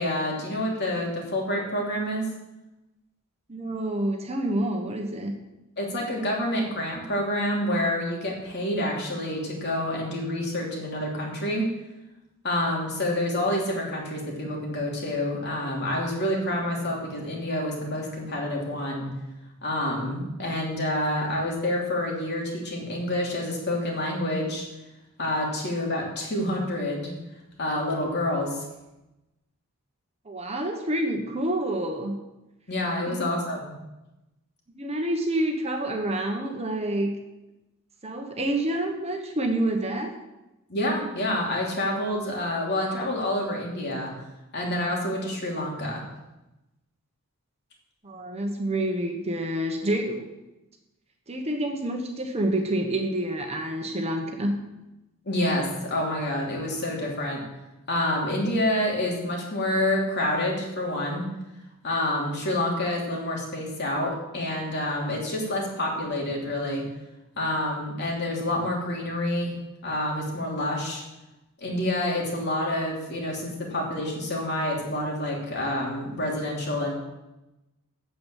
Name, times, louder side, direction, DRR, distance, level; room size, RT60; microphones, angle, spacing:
voice 1, 0.0-2.3 5.8-11.7 12.4-19.1 19.6-24.6 25.2-27.1 27.6-28.6 32.7-33.7 40.7-44.1 44.5-46.0 55.2-57.4 57.9-61.3 61.8-66.9 67.4-69.5 69.8-71.0 71.6-76.9, left 1 dB, 50° left, -1 dB, 3.0 m, -28 dB
voice 2, 3.5-5.3 30.2-32.2 33.1-33.2 34.7-37.1 38.0-40.2 48.0-50.3 51.3-54.5, right 1 dB, 30° right, 3 dB, 1.2 m, -28 dB
8.7 x 7.9 x 7.5 m, 0.98 s
head